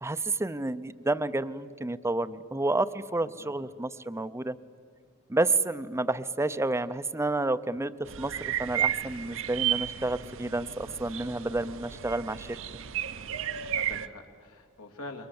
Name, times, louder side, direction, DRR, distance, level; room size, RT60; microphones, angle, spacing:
voice 1, 0.0-4.6 5.3-7.9 8.2-12.6, right 2 dB, 10° right, 14 dB, 0.6 m, -30 dB
sound 1, 8.1-14.1, right 10 dB, 60° right, 0.7 m, -33 dB
voice 2, 13.4-15.3, left 2 dB, 80° left, 3 dB, 2.6 m, -46 dB
28.0 x 23.0 x 7.1 m, 2.2 s
head